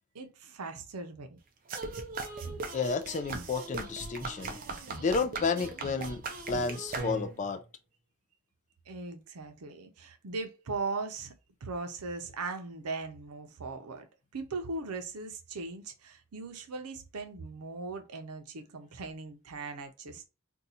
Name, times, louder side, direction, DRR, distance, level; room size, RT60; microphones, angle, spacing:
voice 1, 0.1-1.4 8.9-11.3 11.6-14.1 14.3-20.3, right 3 dB, 85° right, 0.6 m, -39 dB
sound 1, 1.7-7.5, right 3 dB, 40° right, 0.5 m, -39 dB
voice 2, 2.7-4.6 5.0-6.2 6.5-7.6, left 4 dB, 35° left, 0.3 m, -31 dB
2.7 x 2.3 x 4.0 m
head